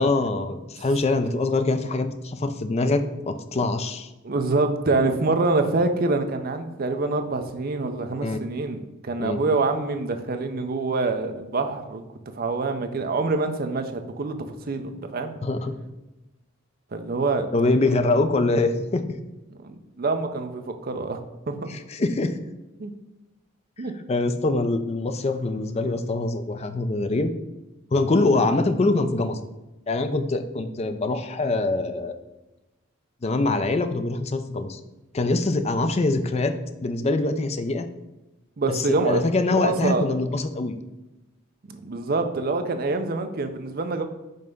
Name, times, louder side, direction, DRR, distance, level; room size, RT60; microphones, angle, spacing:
voice 1, 0.0-4.1 8.2-8.4 9.2-9.4 15.4-15.7 17.5-19.0 21.7-22.4 24.1-27.3 27.9-29.4 29.9-32.2 33.2-34.8 35.1-36.5 36.8-37.9 38.7-40.8, left 2 dB, 30° left, 8 dB, 0.4 m, -24 dB
voice 2, 4.2-12.0 12.4-15.3 16.9-17.5 19.6-21.2 21.5-21.6 22.8-22.9 23.8-23.9 38.6-39.2 39.5-40.1 41.7-44.0, right 3 dB, 45° right, 7 dB, 0.5 m, -25 dB
5.3 x 3.4 x 5.2 m, 1.0 s
head